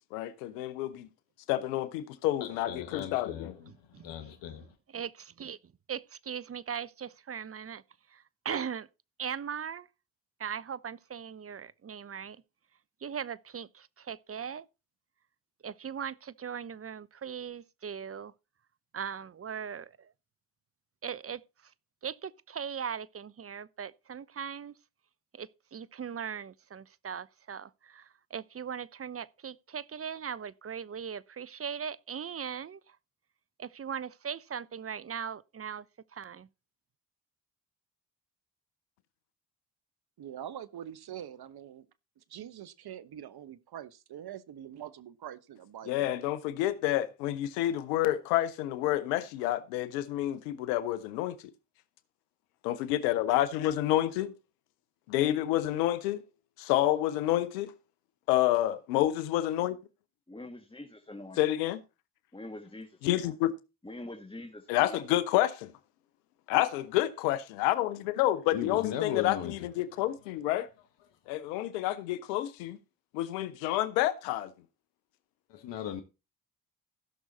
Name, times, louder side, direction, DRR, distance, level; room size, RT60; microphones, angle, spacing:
voice 1, 0.1-1.1 1.5-3.5 45.9-51.4 52.6-54.3 55.1-56.2 56.6-57.7 58.3-59.8 61.4-61.8 63.0-63.5 64.7-65.7 66.5-70.7 71.3-72.8 73.1-74.5, left 14 dB, 85° left, 0.9 m, -29 dB
voice 2, 2.4-3.5 4.0-4.6 68.5-69.5 75.5-76.0, left 10 dB, 70° left, 1.5 m, -36 dB
voice 3, 3.7-5.6 5.9-7.8 8.1-8.9 9.2-9.9 10.4-12.4 13.0-14.7 15.6-18.3 18.9-20.1 21.0-21.7 22.0-24.7 25.3-33.0 33.6-35.9 36.1-36.5, right 7 dB, 30° right, 0.8 m, -39 dB
voice 4, 40.2-41.8 42.2-46.1, right 10 dB, 55° right, 1.1 m, -44 dB
voice 5, 60.3-61.4 62.3-63.3 63.8-65.0, left 1 dB, 10° left, 1.6 m, -44 dB
15.5 x 6.3 x 4.1 m
hypercardioid pair, 45°, 46 cm